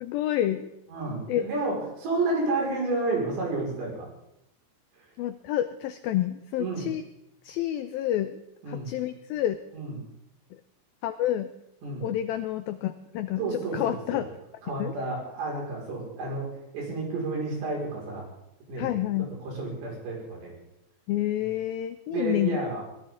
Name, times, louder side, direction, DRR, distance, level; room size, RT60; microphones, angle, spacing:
voice 1, 0.0-0.7 1.3-1.5 5.2-7.0 7.4-8.4 8.7-9.6 10.5-10.6 11.0-11.5 12.0-14.3 14.8-14.9 18.8-19.3 21.1-22.6, left 12 dB, 90° left, 11 dB, 2.0 m, -29 dB
voice 2, 0.9-4.1 6.6-6.9 8.6-8.9 9.7-10.0 11.8-12.1 13.4-14.2 14.6-16.5 16.7-18.3 18.7-18.9 19.4-20.5 22.1-22.8, right 2 dB, 75° right, -3 dB, 7.4 m, -30 dB
22.0 x 17.0 x 3.8 m, 0.85 s
omnidirectional pair, 5.0 m